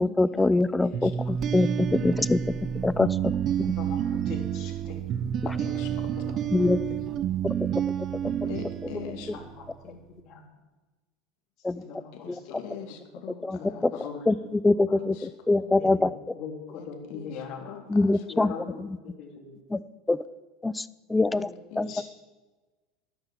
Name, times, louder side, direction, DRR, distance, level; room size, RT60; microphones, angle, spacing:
voice 1, 0.0-2.4 2.8-3.3 3.6-3.7 6.5-6.8 7.4-7.5 11.6-11.8 12.3-12.4 13.4-13.9 14.3-16.1 17.9-18.5 18.8-19.0 19.7-19.8 20.1-20.2 20.6-21.5 21.8-22.0, left 2 dB, 10° left, 17 dB, 0.4 m, -24 dB
sound 1, 0.9-9.6, right 9 dB, 40° right, 0.6 m, -29 dB
voice 2, 3.6-5.0 5.6-6.6 9.3-10.5 11.7-12.8 13.4-14.2 14.9-15.0 15.8-16.1 16.3-17.8 18.3-19.6 21.9-22.0, left 6 dB, 45° left, 1 dB, 3.5 m, -42 dB
voice 3, 5.4-6.3 8.5-9.3 12.1-13.9 15.0-15.3 15.6-15.8 16.7-18.1 18.4-18.6 21.3-22.0, left 8 dB, 65° left, 6 dB, 2.3 m, -43 dB
12.0 x 9.9 x 7.4 m, 1.2 s
supercardioid pair, 140°, 0 cm